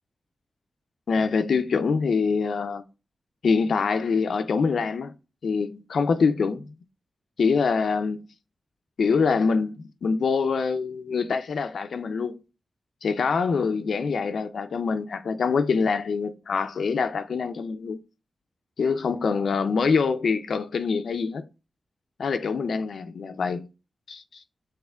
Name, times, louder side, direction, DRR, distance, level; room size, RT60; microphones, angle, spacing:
voice 1, 1.1-2.8 3.4-5.1 5.4-6.7 7.4-8.2 9.0-12.4 13.0-18.0 18.8-21.4 22.2-23.7 24.1-24.4, left 5 dB, 80° left, 0.4 m, -25 dB
5.5 x 3.5 x 2.3 m
cardioid pair, 70°, 0 cm